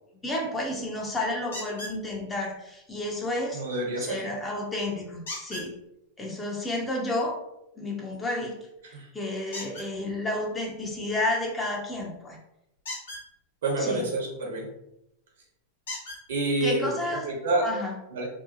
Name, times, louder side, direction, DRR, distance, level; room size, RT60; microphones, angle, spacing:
voice 1, 0.2-3.6 4.0-5.8 6.2-7.4 7.8-8.6 8.9-12.4 13.8-14.1 16.6-17.3 17.6-17.9, left 1 dB, 15° left, -1 dB, 0.5 m, -31 dB
sound 1, 1.5-2.0 5.3-5.7 9.5-9.9 12.8-13.2 14.9-15.0 15.9-16.2 17.2-17.3 17.8-17.9, left 1 dB, 65° left, 0.9 m, -37 dB
voice 2, 3.5-4.2 8.9-9.1 13.6-14.7 16.3-16.9 17.3-17.7 18.1-18.3, right 2 dB, 60° right, 0 dB, 0.7 m, -27 dB
2.6 x 2.1 x 2.6 m, 0.84 s
figure-of-eight pair, 90°, 0 cm